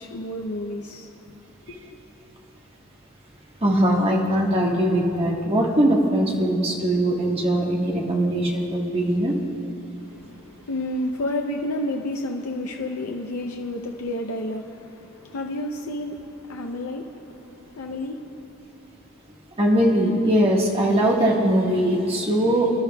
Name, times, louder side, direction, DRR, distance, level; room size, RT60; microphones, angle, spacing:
voice 1, 0.0-1.3 1.7-1.8 10.0-18.4, left 1 dB, 90° left, 2 dB, 0.6 m, -31 dB
voice 2, 1.7-2.0 3.6-9.3 19.6-22.8, right 1 dB, 25° right, -2 dB, 1.5 m, -21 dB
26.0 x 12.0 x 2.3 m, 2.9 s
head